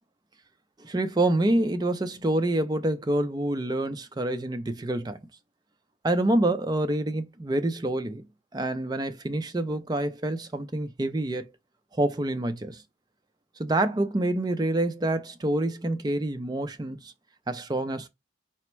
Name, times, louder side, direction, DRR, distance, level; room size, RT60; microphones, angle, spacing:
voice 1, 0.8-5.2 6.0-8.3 8.5-11.5 11.9-12.8 13.6-17.1 17.5-18.1, right 1 dB, 20° right, 0.4 m, -27 dB
4.2 x 2.0 x 4.4 m
head